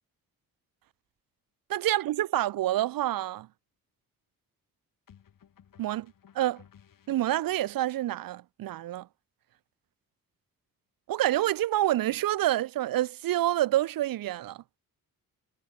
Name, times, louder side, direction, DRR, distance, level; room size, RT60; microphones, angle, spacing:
voice 1, 1.7-3.5 5.8-6.1 6.3-6.6 7.1-9.1 11.1-14.6, right 14 dB, 70° right, 0.7 m, -27 dB
sound 1, 2.4-2.7 5.1-7.7, left 8 dB, 65° left, 6.8 m, -58 dB
cardioid pair, 115°, 36 cm